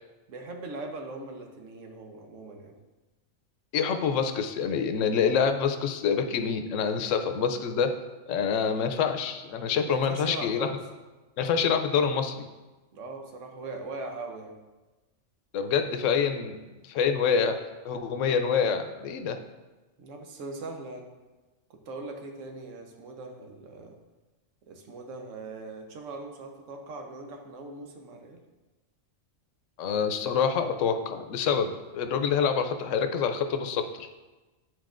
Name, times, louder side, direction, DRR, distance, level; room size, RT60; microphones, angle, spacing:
voice 1, 0.3-2.7 9.8-10.8 12.9-14.5 20.0-21.1 21.7-24.0 24.7-28.4, right 2 dB, 85° right, 3 dB, 1.2 m, -40 dB
voice 2, 3.7-7.9 8.3-10.7 11.4-12.5 15.5-16.5 16.8-17.5 17.8-19.4 29.8-34.1, left 6 dB, 85° left, 7 dB, 0.9 m, -26 dB
9.3 x 4.5 x 2.5 m, 1.2 s
omnidirectional pair, 1.3 m